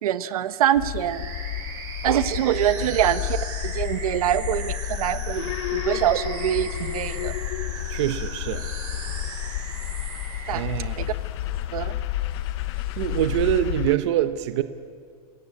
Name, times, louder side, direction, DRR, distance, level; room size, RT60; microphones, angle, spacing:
voice 1, 0.0-1.3 2.0-3.4 3.6-7.3 10.5-10.6 11.0-11.1 11.7-12.0, right 11 dB, 75° right, 1.2 m, -24 dB
sound 1, 0.7-14.0, left 14 dB, 50° left, 0.8 m, -31 dB
sound 2, 1.0-10.7, right 4 dB, 20° right, 6.1 m, -38 dB
sound 3, 6.7-13.6, left 4 dB, 85° left, 6.3 m, -52 dB
voice 2, 7.9-8.7 10.5-11.0 13.0-14.6, right 12 dB, 50° right, 0.9 m, -24 dB
29.5 x 18.0 x 8.5 m
supercardioid pair, 165°, 19 cm